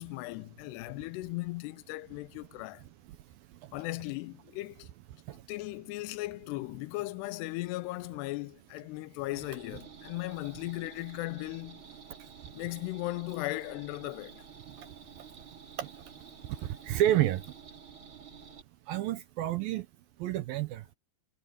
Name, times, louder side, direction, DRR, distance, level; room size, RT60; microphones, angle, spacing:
voice 1, 0.0-2.8 3.7-4.9 5.5-11.8 12.5-14.4, left 20 dB, 85° left, 2.6 m, -37 dB
sound 1, 9.3-18.6, right 6 dB, 30° right, 3.7 m, -51 dB
voice 2, 16.8-17.4 18.9-19.9 20.2-20.8, right 13 dB, 75° right, 2.3 m, -28 dB
omnidirectional pair, 4.9 m